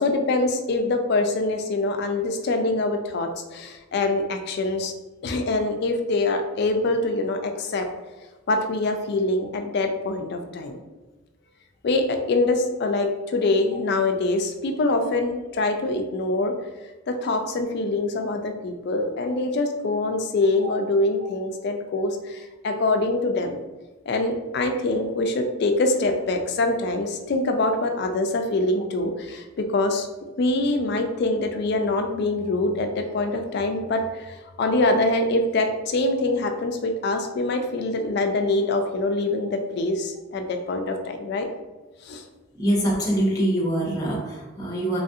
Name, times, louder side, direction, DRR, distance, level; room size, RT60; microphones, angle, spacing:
voice 1, 0.0-4.9 5.2-7.9 8.5-10.8 11.8-16.5 17.1-23.6 24.1-41.5 42.0-42.2, left 2 dB, 55° left, 5 dB, 0.4 m, -24 dB
voice 2, 42.6-45.0, right 1 dB, 20° left, -2 dB, 0.6 m, -24 dB
3.0 x 2.4 x 2.7 m, 1.2 s
head